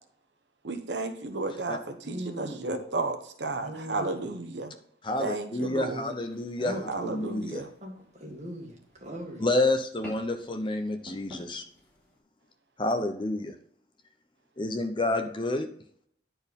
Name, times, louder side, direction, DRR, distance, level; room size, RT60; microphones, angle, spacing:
voice 1, 0.6-4.7 5.2-6.1 6.9-7.7, right 3 dB, 75° right, 7 dB, 1.0 m, -33 dB
voice 2, 2.0-2.7 3.6-4.2 6.6-6.8 7.8-8.7 9.0-9.4, equal, 40° right, 1 dB, 1.7 m, -39 dB
voice 3, 5.0-7.6 9.4-11.6 12.8-13.5 14.6-15.7, left 2 dB, 25° left, 7 dB, 0.7 m, -29 dB
sound 1, 5.5-12.2, equal, 10° left, 3.6 m, -51 dB
10.0 x 4.5 x 5.3 m, 0.64 s
head